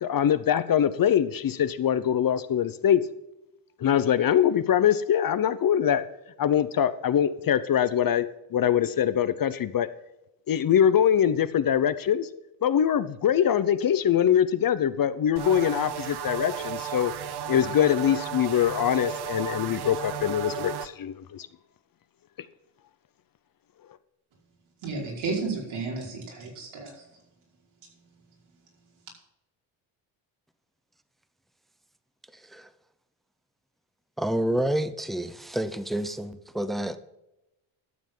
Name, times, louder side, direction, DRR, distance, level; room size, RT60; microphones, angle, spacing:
voice 1, 0.0-3.0 3.8-6.1 6.4-9.9 10.5-12.3 12.6-17.1 17.5-21.5, left 9 dB, 45° left, 13 dB, 0.8 m, -23 dB
sound 1, 15.4-20.9, right 9 dB, 50° right, 1.0 m, -34 dB
voice 2, 24.8-26.9, right 4 dB, 75° right, -2 dB, 5.2 m, -32 dB
voice 3, 34.2-37.0, right 1 dB, ahead, 13 dB, 0.7 m, -28 dB
12.5 x 7.3 x 5.6 m, 0.92 s
cardioid pair, 100°, 49 cm